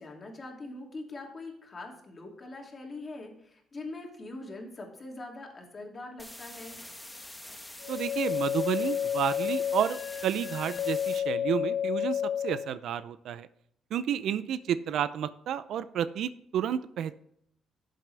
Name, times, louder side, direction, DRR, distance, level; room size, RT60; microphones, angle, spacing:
voice 1, 0.0-6.8, left 2 dB, 35° left, 1 dB, 2.7 m, -43 dB
sound 1, 6.2-11.2, left 1 dB, 10° left, 1.4 m, -45 dB
sound 2, 7.8-12.8, left 9 dB, 70° left, 0.4 m, -31 dB
voice 2, 7.9-13.5 13.9-17.1, right 9 dB, 75° right, 14 dB, 0.5 m, -31 dB
11.5 x 7.6 x 3.4 m, 0.70 s
cardioid pair, 90°, 0 cm